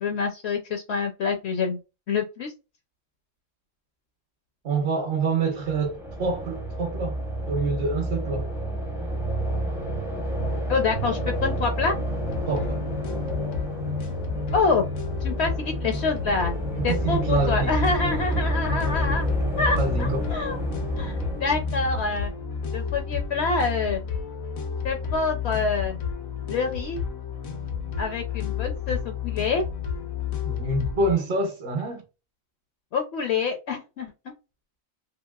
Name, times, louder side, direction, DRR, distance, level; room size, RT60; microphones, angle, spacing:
voice 1, 0.0-1.8 2.1-2.5 10.7-12.0 14.5-14.9 15.2-16.5 16.8-19.3 19.6-20.6 21.0-22.3 22.7-24.0 24.8-26.0 26.5-27.0 28.0-29.7 32.9-34.1, left 4 dB, 65° left, 0.7 m, -26 dB
voice 2, 4.6-7.2 7.5-8.5 12.5-12.8 16.7-17.8 19.7-20.3 30.4-32.0, right 3 dB, 55° right, 0.9 m, -26 dB
sound 1, 5.6-22.5, right 1 dB, 5° right, 0.4 m, -29 dB
sound 2, 12.2-31.1, left 6 dB, 85° left, 1.1 m, -32 dB
2.8 x 2.8 x 2.2 m
omnidirectional pair, 1.4 m